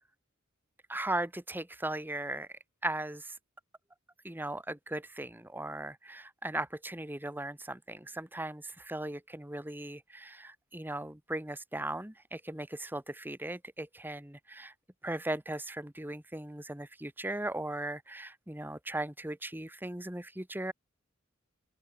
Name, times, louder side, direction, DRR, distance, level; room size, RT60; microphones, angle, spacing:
voice 1, 0.9-2.5 2.8-3.4 4.2-14.7 15.0-20.7, right 1 dB, 10° right, 1.5 m, -38 dB
open air
head